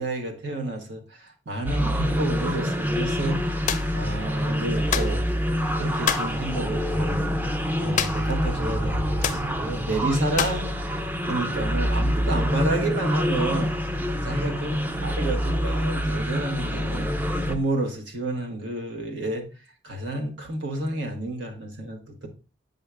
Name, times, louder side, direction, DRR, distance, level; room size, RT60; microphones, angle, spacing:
voice 1, 0.0-3.6 3.9-5.2 5.8-7.2 7.8-13.7 14.2-17.1 17.5-19.5 19.8-22.3, right 2 dB, 75° right, 1.3 m, -30 dB
sound 1, 1.7-17.6, equal, 10° right, 0.5 m, -26 dB
sound 2, 3.7-3.9 4.9-5.2 6.0-6.3 8.0-8.4 8.6-8.7 9.2-9.5 10.4-10.7, left 8 dB, 45° left, 0.4 m, -26 dB
sound 3, 8.5-10.2, right 1 dB, 55° right, 0.6 m, -41 dB
7.8 x 5.5 x 2.2 m
head